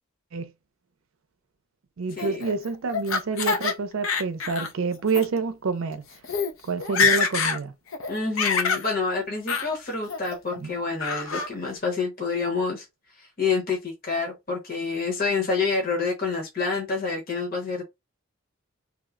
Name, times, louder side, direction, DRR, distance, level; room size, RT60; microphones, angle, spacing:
voice 1, 2.0-6.0 6.6-7.7 10.6-10.7, right 4 dB, 80° right, 0.5 m, -28 dB
Laughter, 2.2-3.7 4.0-4.7 5.1-5.2 5.9-6.0 6.2-6.5 6.8-7.6 7.9-8.9 9.5-9.7 10.1-10.6 11.0-11.5, left 5 dB, 80° left, 0.7 m, -25 dB
voice 2, 8.1-12.8 13.2-17.8, left 4 dB, 45° left, 1.0 m, -28 dB
3.0 x 2.1 x 3.6 m
head